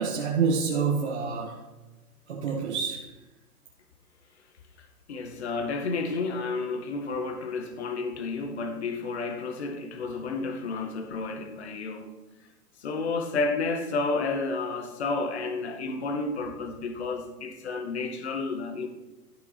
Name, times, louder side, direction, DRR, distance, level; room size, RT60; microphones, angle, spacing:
voice 1, 0.0-1.6 2.3-3.1, right 5 dB, 45° right, 1.1 m, -27 dB
voice 2, 5.1-12.1 12.8-18.9, left 3 dB, 45° left, 1.1 m, -31 dB
12.0 x 5.2 x 4.1 m
hypercardioid pair, 180°, 47 cm